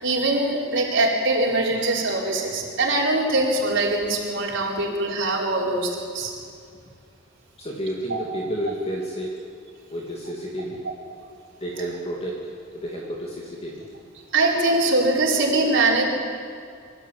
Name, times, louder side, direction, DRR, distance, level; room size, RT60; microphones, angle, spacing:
voice 1, 0.0-6.3 8.1-8.2 14.3-16.0, right 2 dB, 65° right, -3 dB, 4.5 m, -22 dB
voice 2, 7.6-9.4 9.9-10.8 11.6-12.5 12.7-13.8, equal, 30° left, -2 dB, 2.6 m, -31 dB
24.5 x 13.5 x 8.7 m, 2.3 s
head